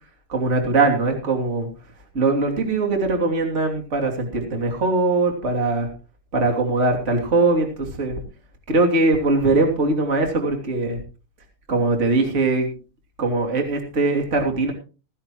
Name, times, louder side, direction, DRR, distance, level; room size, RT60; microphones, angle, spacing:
voice 1, 0.3-1.7 2.1-5.9 6.3-8.1 8.7-11.0 11.7-12.7 13.2-14.7, right 3 dB, 25° right, 2 dB, 2.8 m, -21 dB
16.0 x 15.0 x 3.0 m, 0.34 s
omnidirectional pair, 3.7 m